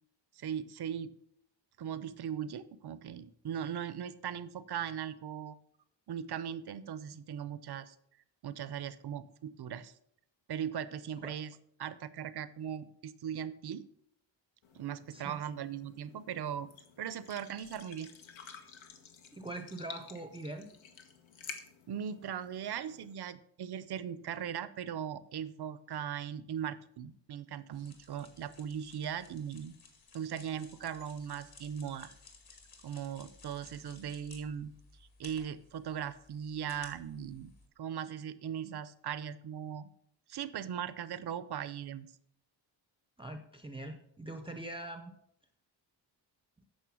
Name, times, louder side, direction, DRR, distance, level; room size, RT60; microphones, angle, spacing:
voice 1, 0.4-1.1 1.8-5.6 6.1-7.9 8.4-9.9 10.5-11.5 11.8-13.9 14.7-16.7 17.0-18.1 21.9-29.7 30.1-32.1 32.8-34.7 35.2-37.5 37.8-39.9 40.3-42.1, right 8 dB, 55° right, 15 dB, 0.7 m, -39 dB
sound 1, 14.6-23.1, left 6 dB, 80° left, 1.5 m, -52 dB
voice 2, 15.1-15.4 19.3-20.7 43.2-45.1, right 2 dB, 10° right, 6 dB, 0.6 m, -43 dB
sound 2, 27.7-37.7, left 4 dB, 50° left, 2.1 m, -58 dB
9.3 x 6.5 x 6.2 m, 0.71 s
wide cardioid pair, 150°, 46 cm